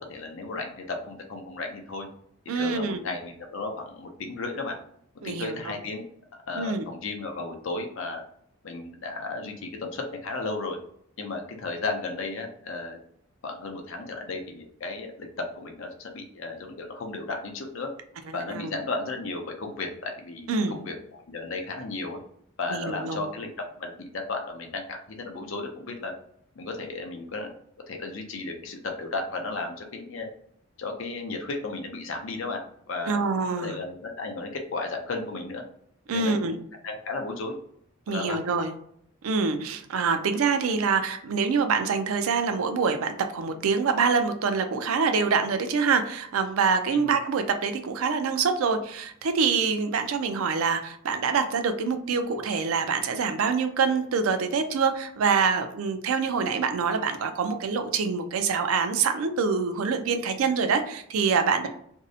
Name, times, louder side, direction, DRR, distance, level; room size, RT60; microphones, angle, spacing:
voice 1, 0.0-2.1 2.5-4.8 5.2-6.0 6.5-8.2 8.6-10.8 11.2-13.0 13.4-17.9 18.3-22.2 22.6-23.5 23.8-26.1 26.6-27.5 27.9-30.3 30.8-32.6 32.9-33.2 33.6-35.6 36.1-36.6 36.8-37.6 38.1-38.4 46.9-47.1, left 3 dB, 65° left, 3 dB, 0.5 m, -34 dB
voice 2, 2.5-3.0 5.2-5.6 6.5-6.9 18.3-18.7 20.5-20.7 22.7-23.2 33.1-33.8 36.1-36.6 38.1-38.7 39.2-61.7, right 5 dB, 75° right, 7 dB, 0.4 m, -25 dB
2.6 x 2.0 x 2.6 m, 0.69 s
head